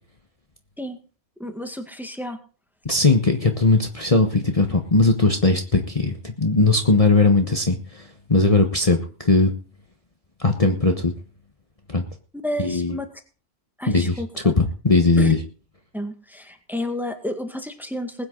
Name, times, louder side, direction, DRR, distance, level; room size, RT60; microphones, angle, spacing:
voice 1, 1.4-2.4 12.3-13.1 13.8-14.5 15.2-15.3 15.9-18.2, left 1 dB, ahead, 6 dB, 1.9 m, -31 dB
voice 2, 2.8-9.5 10.4-11.1 11.9-12.0 12.6-13.0 13.9-15.4, left 3 dB, 30° left, 3 dB, 1.4 m, -19 dB
20.5 x 9.5 x 3.9 m, 0.38 s
omnidirectional pair, 1.2 m